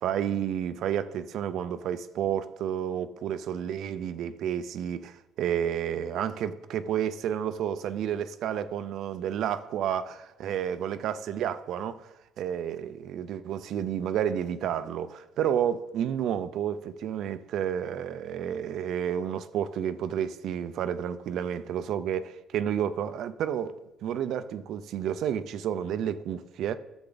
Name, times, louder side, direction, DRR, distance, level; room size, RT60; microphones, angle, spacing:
voice 1, 0.0-12.1 12.4-26.8, right 9 dB, 65° right, 0.6 m, -31 dB
12.0 x 7.1 x 4.0 m
cardioid pair, 125°, 0 cm